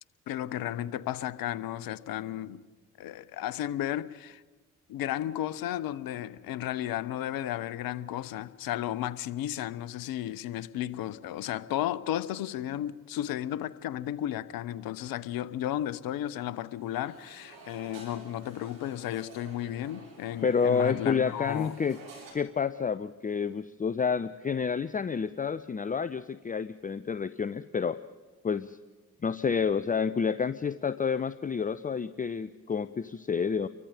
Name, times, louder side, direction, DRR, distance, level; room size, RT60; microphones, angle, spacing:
voice 1, 0.3-2.6 3.0-4.4 4.9-21.7, left 12 dB, 55° left, 0.9 m, -34 dB
sound 1, 16.7-22.3, right 3 dB, 60° right, 7.2 m, -50 dB
voice 2, 20.4-22.0 22.3-28.0 28.4-28.8 29.2-33.7, left 6 dB, 20° left, 0.6 m, -29 dB
30.0 x 23.5 x 5.1 m
figure-of-eight pair, 40°, 41 cm